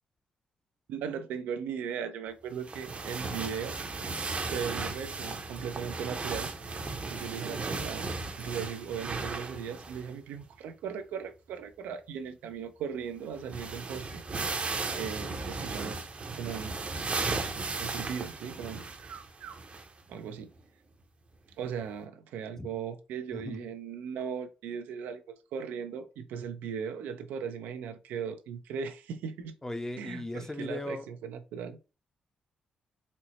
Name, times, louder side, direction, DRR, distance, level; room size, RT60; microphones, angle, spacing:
voice 1, 0.9-4.1 4.5-6.5 7.1-8.1 8.4-14.2 14.9-16.1 16.3-17.3 17.8-19.6 20.1-20.5 21.6-25.2 25.5-29.5 30.0-31.8, right 7 dB, 85° right, 0.4 m, -38 dB
sound 1, 2.6-10.1 10.4-10.5 13.0-13.1 13.3-20.0 20.6-20.7 21.8-21.9, right 3 dB, 45° right, 0.7 m, -36 dB
voice 2, 23.3-23.7 29.6-31.1, left 1 dB, 15° left, 0.6 m, -37 dB
4.1 x 2.0 x 2.9 m
supercardioid pair, 55°, 3 cm